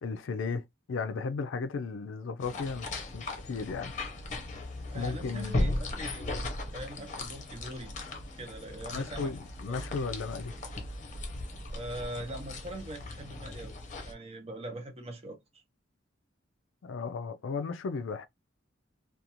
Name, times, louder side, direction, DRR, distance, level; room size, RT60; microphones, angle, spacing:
voice 1, 0.0-3.9 4.9-5.7 8.9-10.5 16.8-18.3, left 4 dB, 70° left, 0.4 m, -35 dB
sound 1, 2.4-14.1, left 2 dB, 40° left, 0.7 m, -37 dB
voice 2, 4.9-6.4 6.7-7.9 8.4-9.3 9.7-9.8 11.7-13.7 14.0-15.4, right 1 dB, 30° right, 0.7 m, -41 dB
2.5 x 2.3 x 2.8 m
head